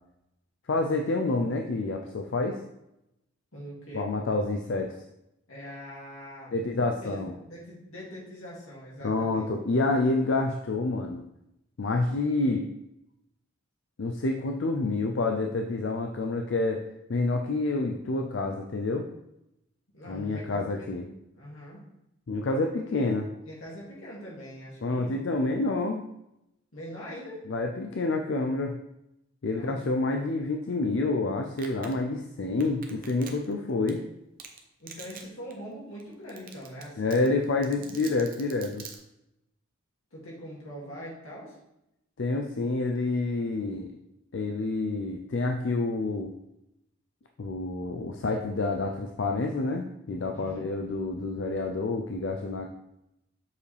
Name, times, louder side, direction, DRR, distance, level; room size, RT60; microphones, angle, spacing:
voice 1, 0.7-2.6 3.9-4.9 6.5-7.3 9.0-11.2 11.8-12.7 14.0-16.8 17.1-19.0 20.1-21.0 22.3-23.3 24.8-26.0 27.5-28.7 29.4-34.0 37.0-38.9 42.2-43.9 44.3-46.3 47.4-52.7, left 2 dB, 60° left, 3 dB, 0.4 m, -28 dB
voice 2, 3.5-4.1 5.5-9.5 19.9-21.1 21.3-21.8 23.4-25.2 26.7-27.4 29.5-30.1 34.8-37.8 40.1-41.6 50.3-50.7, equal, 80° left, -5 dB, 2.4 m, -43 dB
Domestic sounds home sounds, 31.6-31.9 32.6-33.5 33.9-34.0 34.4-34.6 34.9-35.2 35.5-35.6 36.0-36.1 36.3-36.8 37.1-39.0, right 7 dB, 40° right, 0.7 m, -43 dB
6.8 x 4.9 x 3.3 m, 0.86 s
head